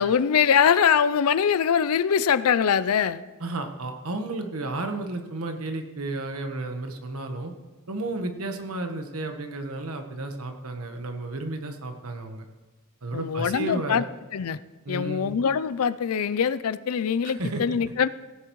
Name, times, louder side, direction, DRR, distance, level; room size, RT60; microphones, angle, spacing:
voice 1, 0.0-3.2 13.1-14.0 14.3-14.6 14.9-18.1, left 7 dB, 75° left, 16 dB, 0.4 m, -23 dB
voice 2, 3.4-7.5 7.9-12.4 13.0-14.0 14.8-15.3 17.2-17.8, right 2 dB, 75° right, 5 dB, 1.2 m, -32 dB
17.0 x 10.5 x 3.1 m, 1.3 s
head